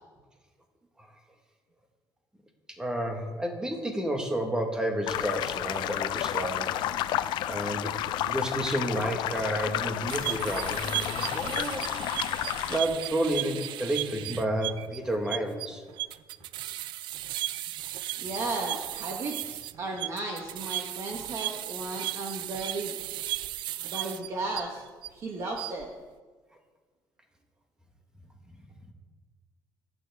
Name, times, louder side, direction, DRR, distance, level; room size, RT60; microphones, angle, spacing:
voice 1, 2.8-6.8 7.4-7.9 8.3-11.8 12.7-15.8, right 1 dB, 10° right, 3 dB, 1.5 m, -31 dB
sound 1, 5.1-12.8, left 12 dB, 70° left, 0.5 m, -31 dB
sound 2, 10.1-25.1 25.5-25.8, right 16 dB, 70° right, 0.4 m, -35 dB
voice 2, 18.2-23.0 23.8-24.8 25.1-25.9, right 2 dB, 40° right, 1 dB, 1.3 m, -35 dB
25.5 x 9.3 x 3.5 m, 1.4 s
cardioid pair, 170°, 8 cm